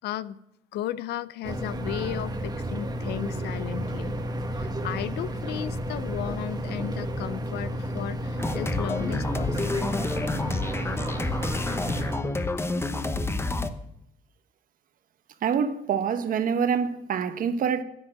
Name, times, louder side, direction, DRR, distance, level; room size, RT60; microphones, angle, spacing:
voice 1, 0.0-0.4 0.7-4.1 4.5-9.9, left 12 dB, 75° left, 0.7 m, -35 dB
sound 1, 1.4-12.2, equal, 25° right, 1.5 m, -31 dB
sound 2, 8.4-13.7, left 2 dB, 15° left, 0.9 m, -29 dB
voice 2, 15.4-17.8, right 7 dB, 55° right, 1.2 m, -26 dB
10.5 x 8.6 x 9.0 m
cardioid pair, 110°, 17 cm